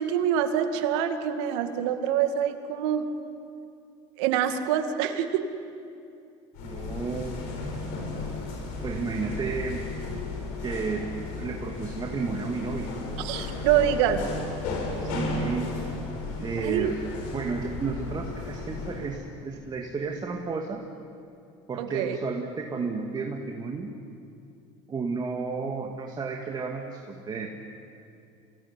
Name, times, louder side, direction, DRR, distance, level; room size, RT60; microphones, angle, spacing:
voice 1, 0.0-3.1 4.2-5.5 13.2-14.3 16.6-16.9 21.8-22.2, right 9 dB, 75° right, 7 dB, 2.2 m, -25 dB
sound 1, 6.5-19.2, left 3 dB, 70° left, 6.8 m, -34 dB
voice 2, 6.6-7.4 8.8-9.9 10.6-12.9 15.0-15.7 16.4-17.0 17.3-20.8 21.7-23.9 24.9-27.5, right 4 dB, 30° right, 2 dB, 2.5 m, -32 dB
28.0 x 19.0 x 9.9 m, 2.5 s
supercardioid pair, 95°, 14 cm